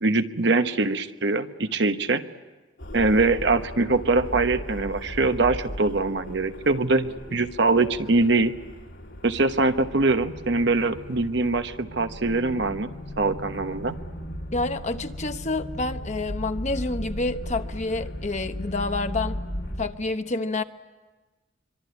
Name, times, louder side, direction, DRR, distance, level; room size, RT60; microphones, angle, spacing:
voice 1, 0.0-2.2 2.9-8.5 9.2-12.9 13.2-14.0, right 3 dB, 60° right, 8 dB, 1.1 m, -23 dB
sound 1, 2.8-19.9, equal, 75° left, 3.4 m, -37 dB
voice 2, 14.5-19.4 19.8-20.6, left 2 dB, 35° left, 8 dB, 1.0 m, -28 dB
25.0 x 24.0 x 9.6 m, 1.2 s
head